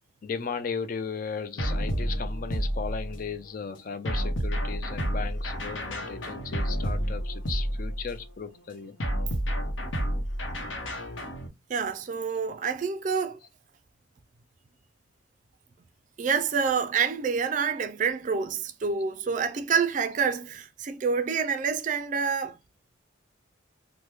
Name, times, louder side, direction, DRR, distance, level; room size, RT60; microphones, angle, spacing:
voice 1, 0.2-9.0, left 5 dB, 45° left, 0.4 m, -36 dB
sound 1, 1.6-3.3 4.0-8.2 9.0-11.5, equal, 80° left, 0.9 m, -30 dB
voice 2, 11.7-13.4 16.2-22.6, right 6 dB, 40° right, 0.3 m, -27 dB
3.0 x 2.1 x 3.4 m
head